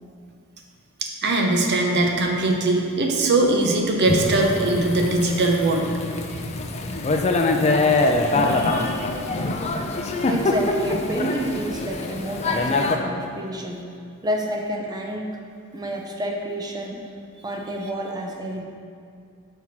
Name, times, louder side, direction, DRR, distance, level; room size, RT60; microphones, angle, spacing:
voice 1, 1.2-5.9 8.4-9.0, right 2 dB, 50° right, 1 dB, 0.8 m, -21 dB
Thunder / Rain, 4.0-13.0, left 2 dB, 30° left, 0.4 m, -24 dB
voice 2, 10.3-13.8 14.2-15.4 15.7-17.0 17.4-18.6, right 1 dB, 20° right, 1 dB, 0.6 m, -29 dB
5.6 x 4.5 x 5.9 m, 2.3 s
head